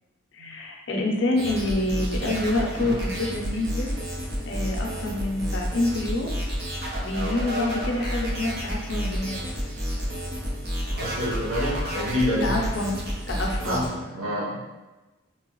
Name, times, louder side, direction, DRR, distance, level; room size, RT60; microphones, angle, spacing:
voice 1, 0.3-3.9 4.5-6.3 7.0-9.5 12.4-12.9 13.3-13.8, left 2 dB, 60° left, 0 dB, 0.6 m, -27 dB
sound 1, 1.4-13.9, equal, 50° right, 0.8 m, -30 dB
voice 2, 10.9-12.6 13.6-14.6, equal, 75° right, -4 dB, 1.0 m, -27 dB
3.0 x 3.0 x 3.0 m, 1.1 s
head